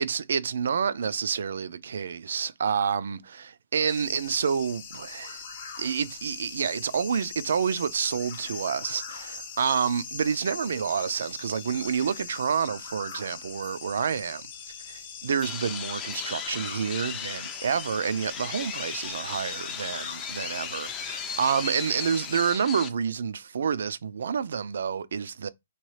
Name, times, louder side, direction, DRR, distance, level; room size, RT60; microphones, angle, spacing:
voice 1, 0.0-5.4 5.8-14.4 14.9-25.5, right 7 dB, 70° right, 0.3 m, -28 dB
sound 1, 3.9-22.5, left 6 dB, 40° left, 0.7 m, -42 dB
sound 2, 15.4-22.9, left 7 dB, 15° left, 0.3 m, -37 dB
2.9 x 2.3 x 3.1 m
hypercardioid pair, 165°, 0 cm